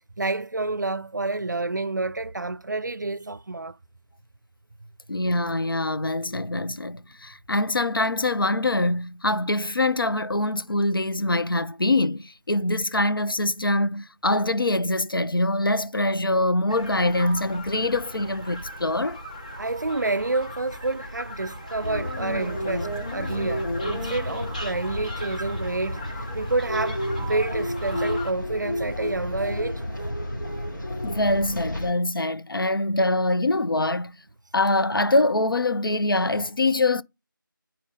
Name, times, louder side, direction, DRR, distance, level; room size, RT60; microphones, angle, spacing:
voice 1, 0.2-3.8 19.6-29.8, right 2 dB, 60° right, 0.5 m, -29 dB
voice 2, 5.1-19.2 31.0-34.1 34.5-37.0, left 2 dB, 80° left, 0.7 m, -24 dB
sound 1, 16.7-28.3, equal, 20° left, 0.8 m, -38 dB
sound 2, 21.8-31.9, left 1 dB, 60° left, 2.1 m, -31 dB
8.5 x 4.4 x 3.9 m
figure-of-eight pair, 175°, 11 cm